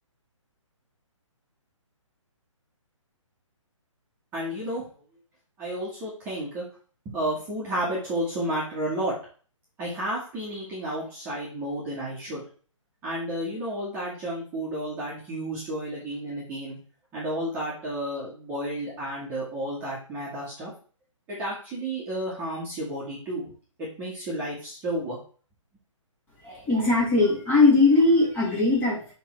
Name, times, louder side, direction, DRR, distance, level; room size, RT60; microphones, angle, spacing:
voice 1, 4.3-4.9 5.6-6.7 7.1-9.1 9.8-12.4 13.0-16.8 17.1-20.7 21.3-23.4 23.8-25.2, right 1 dB, 10° right, -7 dB, 1.8 m, -31 dB
voice 2, 26.4-29.1, left 3 dB, 10° left, -6 dB, 2.2 m, -20 dB
6.7 x 3.8 x 4.6 m, 0.40 s
hypercardioid pair, 165°, 17 cm